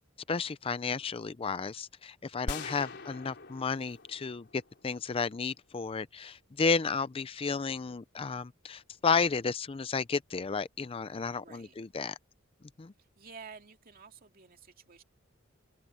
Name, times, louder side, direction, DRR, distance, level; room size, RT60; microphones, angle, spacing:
voice 1, 0.3-12.2 12.8-12.9, left 5 dB, 30° left, 0.4 m, -32 dB
sound 1, 2.5-5.4, left 2 dB, 55° left, 4.1 m, -43 dB
voice 2, 2.5-3.0 11.4-11.7 13.0-15.0, right 5 dB, 45° right, 2.5 m, -52 dB
head